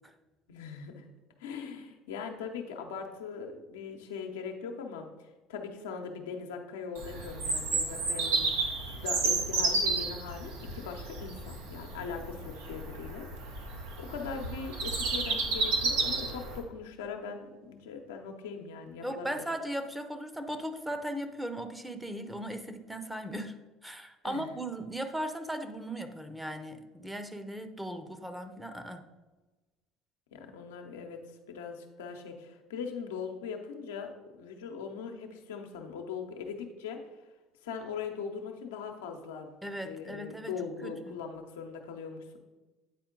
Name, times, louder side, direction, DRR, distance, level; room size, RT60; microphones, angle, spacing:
voice 1, 0.5-1.1 1.4-8.5 9.0-13.3 13.5-19.4 24.2-24.5 30.3-31.2 31.5-34.1 34.4-37.0 37.6-39.5 39.8-42.4, left 6 dB, 85° left, 3 dB, 0.8 m, -40 dB
Bird vocalization bird call bird song, 7.0-16.6, right 3 dB, 80° right, 1.3 m, -31 dB
voice 2, 19.0-23.5 23.8-29.0 39.6-40.5 40.8-41.2, right 1 dB, 5° right, 8 dB, 0.8 m, -37 dB
9.0 x 4.3 x 3.9 m, 1.2 s
hypercardioid pair, 75°, 0 cm